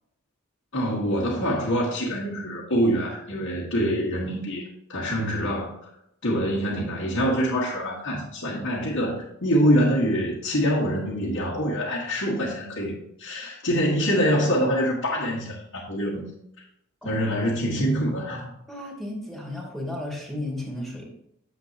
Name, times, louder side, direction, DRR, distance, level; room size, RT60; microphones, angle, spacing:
voice 1, 0.7-5.7 6.2-16.3 17.0-18.5, equal, 75° left, -5 dB, 1.7 m, -25 dB
voice 2, 18.7-21.1, left 1 dB, ahead, -2 dB, 2.1 m, -34 dB
9.7 x 7.4 x 2.9 m, 0.78 s
head